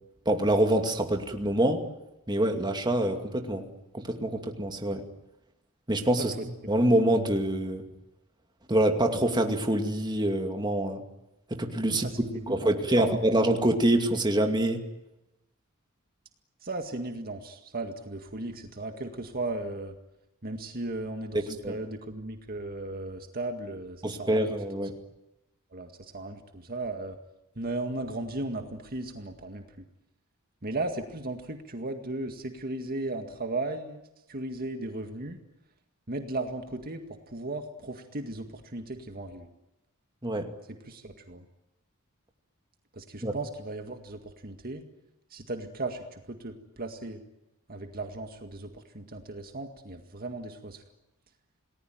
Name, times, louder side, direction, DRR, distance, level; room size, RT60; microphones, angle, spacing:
voice 1, 0.3-1.8 2.3-3.7 3.9-5.0 5.9-6.3 6.7-7.9 8.7-11.0 11.5-12.1 12.5-14.8 21.3-21.8 24.0-24.9 40.2-40.5 43.2-43.3, right 1 dB, 20° right, 4 dB, 2.4 m, -25 dB
voice 2, 11.9-13.1 13.4-13.5 16.6-20.0 20.4-24.5 25.7-27.2 27.6-29.6 30.6-34.0 34.3-35.4 36.1-39.5 40.9-41.5 42.9-44.8 45.3-47.2 47.7-50.8, right 2 dB, 45° right, 5 dB, 2.0 m, -36 dB
28.5 x 19.5 x 9.2 m, 0.94 s
head